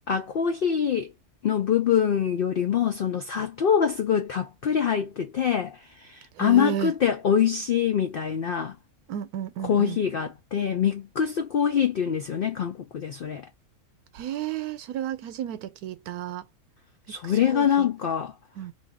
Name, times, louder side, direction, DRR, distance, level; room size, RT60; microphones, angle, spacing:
voice 1, 0.1-1.1 1.4-8.7 9.6-13.4 17.1-18.3, left 8 dB, 75° left, 0.5 m, -24 dB
voice 2, 6.4-6.9 9.1-10.0 14.1-16.4 17.1-17.9 18.6-18.7, right 10 dB, 90° right, 1.1 m, -33 dB
2.8 x 2.6 x 3.5 m
omnidirectional pair, 1.5 m